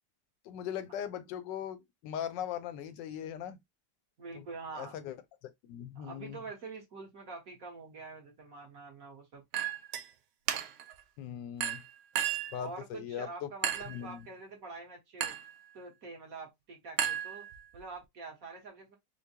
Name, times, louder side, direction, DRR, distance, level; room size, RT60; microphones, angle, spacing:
voice 1, 0.4-3.6 4.3-4.4 4.8-5.2 5.6-6.4 11.2-11.8 12.5-13.5 13.9-14.3, left 9 dB, 85° left, 1.3 m, -39 dB
voice 2, 4.2-5.0 6.0-9.4 12.6-15.4 15.7-19.0, right 4 dB, 55° right, 1.6 m, -46 dB
Chink clink, 9.5-10.1 10.5-10.9 11.6-12.6 13.6-14.0 15.2-15.5 17.0-17.8, right 10 dB, 70° right, 0.8 m, -34 dB
4.4 x 2.1 x 2.8 m
omnidirectional pair, 1.9 m